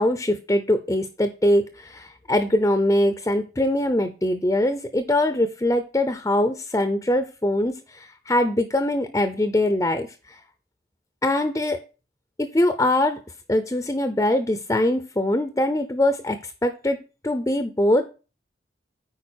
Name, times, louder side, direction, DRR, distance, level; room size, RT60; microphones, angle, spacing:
voice 1, 0.0-10.4 11.2-11.8 12.4-13.2 13.5-17.0 17.2-18.1, left 1 dB, 20° left, 9 dB, 0.5 m, -22 dB
8.7 x 4.9 x 4.4 m, 0.34 s
head